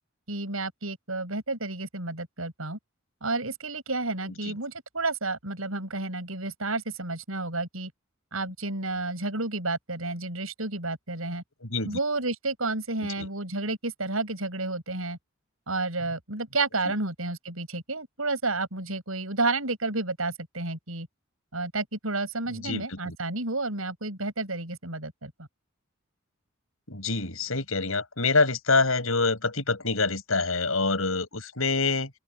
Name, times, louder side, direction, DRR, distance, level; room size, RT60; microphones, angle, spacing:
voice 1, 0.3-2.8 3.2-7.9 8.3-11.4 11.8-15.2 15.7-21.1 21.5-25.5, right 2 dB, 85° right, 7.0 m, -31 dB
voice 2, 11.6-11.9 13.2-13.3 16.8-16.9 22.6-23.1 26.9-32.1, left 3 dB, 85° left, 6.8 m, -26 dB
open air
head